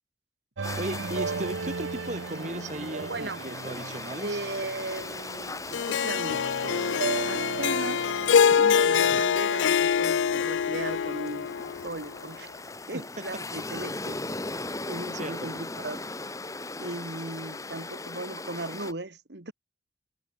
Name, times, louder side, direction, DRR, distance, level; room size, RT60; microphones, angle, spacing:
sound 1, 0.6-18.9, left 2 dB, 15° left, 1.3 m, -39 dB
sound 2, 0.6-5.8 6.3-9.2, right 4 dB, 85° right, 0.7 m, -36 dB
voice 1, 0.8-4.5 15.1-15.5, right 1 dB, 40° right, 6.0 m, -36 dB
voice 2, 3.1-3.4 4.2-6.4 7.2-8.1 8.5-12.5 12.9-14.2 14.9-16.1 16.8-19.5, right 2 dB, 65° right, 1.8 m, -37 dB
Harp, 5.7-12.1, left 7 dB, 85° left, 0.4 m, -24 dB
head